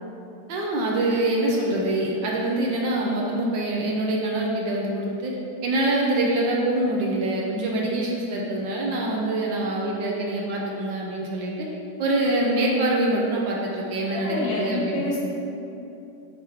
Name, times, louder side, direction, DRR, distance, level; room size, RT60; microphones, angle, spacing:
voice 1, 0.5-5.3 5.6-11.7 12.0-15.0, right 1 dB, 70° right, -2 dB, 1.4 m, -25 dB
voice 2, 14.1-15.2, left 1 dB, 70° left, -4 dB, 2.0 m, -28 dB
8.1 x 4.7 x 3.5 m, 2.9 s
omnidirectional pair, 2.1 m